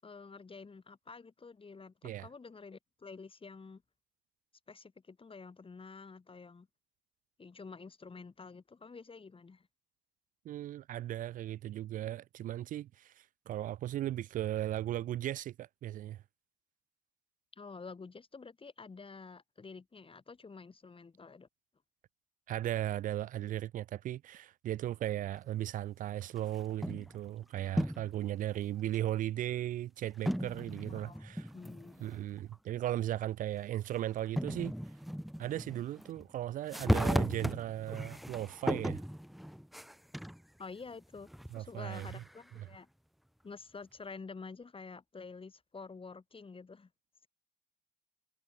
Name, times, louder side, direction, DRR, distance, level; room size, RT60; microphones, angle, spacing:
voice 1, 0.0-3.8 4.7-6.7 7.4-9.7 17.5-21.5 30.9-32.1 40.6-41.3 41.5-42.9 43.4-46.9, left 4 dB, 35° left, 5.8 m, -49 dB
voice 2, 10.5-16.2 22.5-31.5 32.0-34.7 35.4-39.0 41.5-42.2 42.6-42.7, right 13 dB, 65° right, 0.4 m, -37 dB
sound 1, 26.4-27.2 27.6-28.2 28.9-29.0 30.3-32.2 32.5-32.6 33.8-33.9 34.4-36.2 36.6-40.4 40.9-42.5, equal, ahead, 0.6 m, -36 dB
supercardioid pair, 50°, 15 cm